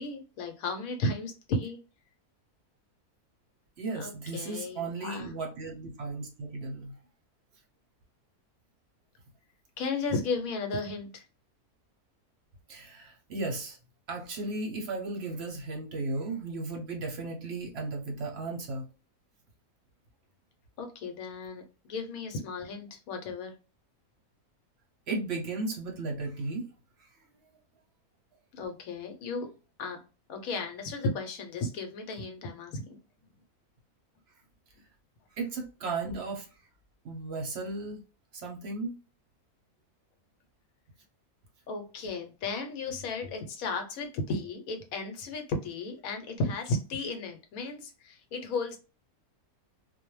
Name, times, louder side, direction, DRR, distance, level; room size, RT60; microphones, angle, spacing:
voice 1, 0.0-1.8 3.9-5.3 9.8-11.2 20.8-21.6 21.9-23.5 28.5-29.5 29.8-30.0 30.3-32.8 41.7-48.8, left 3 dB, 70° left, 1.0 m, -34 dB
voice 2, 3.8-6.9 12.7-13.8 14.1-18.9 25.1-26.6 27.0-27.1 35.4-36.5 37.0-38.0 38.3-38.9, right 3 dB, 55° right, 0.8 m, -35 dB
2.5 x 2.1 x 3.0 m
omnidirectional pair, 1.6 m